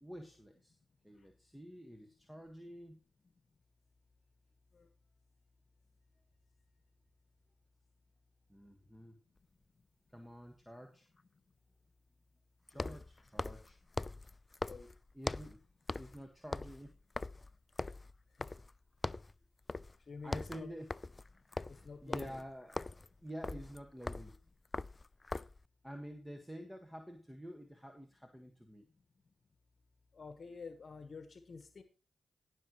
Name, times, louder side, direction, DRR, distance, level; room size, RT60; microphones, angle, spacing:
voice 1, 0.0-0.7 1.0-3.0 8.5-9.2 10.1-11.1 12.7-13.8 15.1-15.6 15.9-16.9 20.2-20.9 21.7-24.3 25.8-28.9, equal, 5° right, 5 dB, 1.6 m, -49 dB
sound 1, 9.4-9.5 12.7-15.6 15.9-16.2 16.5-18.8 19.0-19.3 19.7-20.0 20.2-25.6, left 2 dB, 30° left, 0.4 m, -41 dB
voice 2, 20.1-20.7 21.7-22.4 30.1-31.8, left 4 dB, 50° left, 9 dB, 1.2 m, -49 dB
18.0 x 6.4 x 3.1 m, 0.33 s
supercardioid pair, 45°, 0 cm